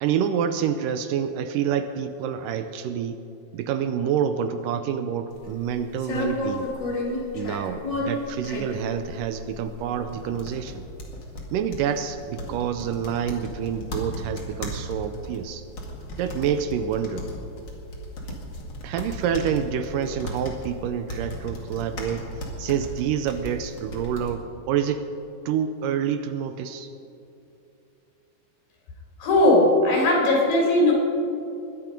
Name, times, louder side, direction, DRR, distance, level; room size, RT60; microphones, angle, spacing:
voice 1, 0.0-3.2 3.5-6.7 7.3-10.9 11.5-15.6 16.2-17.3 18.8-22.3 22.6-25.1 25.5-26.9, right 8 dB, 80° right, 10 dB, 2.1 m, -27 dB
sound 1, 5.3-24.3, left 1 dB, 35° left, 2.2 m, -34 dB
voice 2, 29.2-30.9, left 1 dB, 80° left, -2 dB, 5.3 m, -18 dB
21.5 x 10.5 x 5.3 m, 2.7 s
omnidirectional pair, 4.1 m